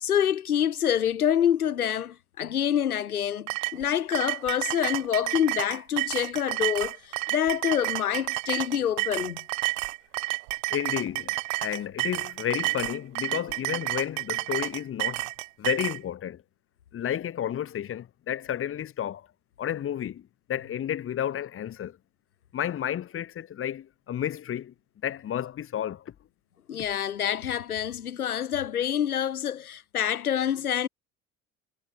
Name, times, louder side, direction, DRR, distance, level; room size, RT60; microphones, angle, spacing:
voice 1, 0.0-7.0 7.3-9.4 26.7-30.9, left 9 dB, 80° left, 0.8 m, -26 dB
sound 1, 3.5-16.0, right 23 dB, 60° right, 0.8 m, -30 dB
voice 2, 10.7-15.3 15.6-16.4 16.9-19.3 19.6-22.0 22.5-24.7 25.0-26.1, left 10 dB, 30° left, 1.1 m, -31 dB
figure-of-eight pair, 60°, 43 cm